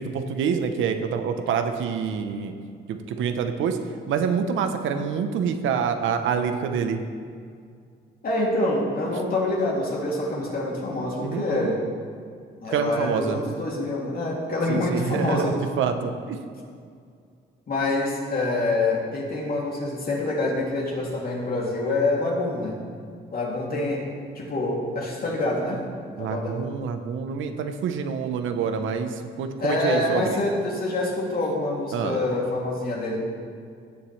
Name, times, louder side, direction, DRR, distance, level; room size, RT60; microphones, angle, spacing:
voice 1, 0.0-2.5 2.9-3.8 4.1-7.0 11.2-11.7 12.7-13.4 14.7-16.4 26.2-30.4 31.9-32.2, right 6 dB, 80° right, 7 dB, 0.8 m, -27 dB
voice 2, 8.2-11.8 12.6-15.6 17.7-22.8 23.3-24.0 24.3-25.8 26.2-26.6 29.6-33.2, left 2 dB, 50° left, -3 dB, 2.7 m, -26 dB
16.0 x 7.1 x 3.2 m, 2.2 s
cardioid pair, 90°, 20 cm